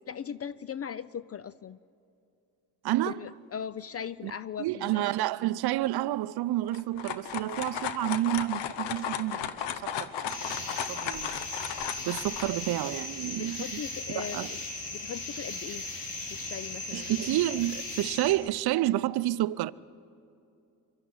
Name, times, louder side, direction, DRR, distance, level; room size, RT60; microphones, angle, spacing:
voice 1, 0.1-1.8 3.1-5.0 13.4-14.6 14.9-15.9 16.3-17.1, left 8 dB, 35° left, 0.5 m, -39 dB
voice 2, 2.8-3.2 4.2-4.3 4.6-11.5 12.1-13.8 14.1-14.5 16.9-19.7, right 15 dB, 65° right, 0.6 m, -30 dB
sound 1, 6.7-12.5, left 9 dB, 80° left, 1.0 m, -35 dB
sound 2, 10.3-18.3, left 2 dB, 55° left, 4.4 m, -37 dB
23.0 x 12.5 x 9.5 m
supercardioid pair, 70°, 41 cm